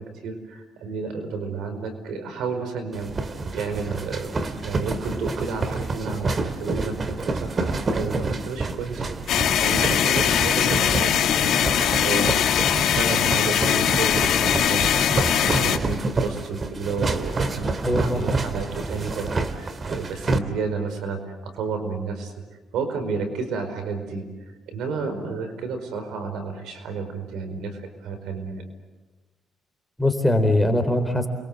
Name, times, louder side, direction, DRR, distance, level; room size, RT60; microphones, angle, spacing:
voice 1, 0.0-3.1 3.5-22.3 22.7-28.6, right 4 dB, 85° right, 8 dB, 4.8 m, -31 dB
sound 1, 2.9-20.4, right 3 dB, 40° right, 2.1 m, -28 dB
sound 2, 9.3-15.8, left 10 dB, 75° left, 1.9 m, -21 dB
voice 2, 17.8-18.4 30.0-31.3, left 1 dB, 5° left, 6 dB, 4.0 m, -21 dB
29.0 x 23.0 x 8.0 m, 1.2 s
cardioid pair, 90°, 0 cm